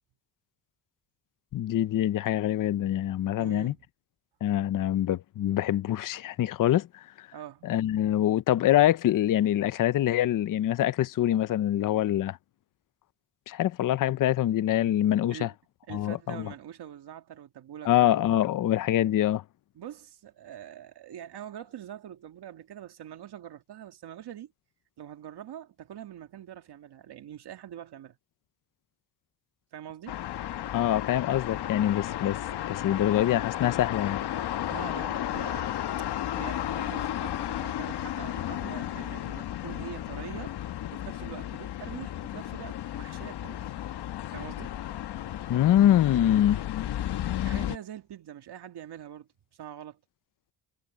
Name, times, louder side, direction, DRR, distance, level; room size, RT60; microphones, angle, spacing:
voice 1, 1.5-3.7 4.4-6.9 7.2-7.3 7.6-12.4 13.5-15.5 15.9-16.5 17.9-19.4 30.7-32.4 32.7-34.2 45.5-46.6, left 12 dB, 50° left, 0.6 m, -25 dB
voice 2, 3.4-3.8 7.3-7.7 15.3-15.5 15.9-18.2 19.7-24.5 25.0-28.2 29.7-30.2 34.7-40.5 40.9-43.6 44.3-44.7 47.4-49.3 49.6-50.0, right 10 dB, 65° right, 2.1 m, -44 dB
sound 1, 30.1-47.8, left 12 dB, 65° left, 1.0 m, -33 dB
cardioid pair, 130°, 43 cm